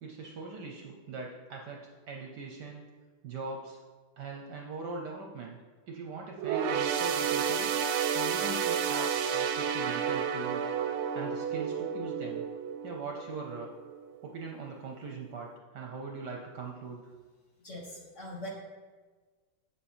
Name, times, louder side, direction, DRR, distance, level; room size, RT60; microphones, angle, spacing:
voice 1, 0.0-2.8 3.2-3.8 4.2-5.6 5.9-7.7 8.1-10.7 11.1-12.4 12.8-13.7 14.2-15.5 15.7-17.0, right 4 dB, 65° right, 1 dB, 1.2 m, -41 dB
sound 1, 6.4-14.1 14.5-14.7 15.5-15.6, right 7 dB, 90° right, 1.5 m, -31 dB
voice 2, 17.6-18.5, left 1 dB, 40° left, -3 dB, 1.7 m, -42 dB
8.1 x 7.4 x 4.3 m, 1.4 s
omnidirectional pair, 2.4 m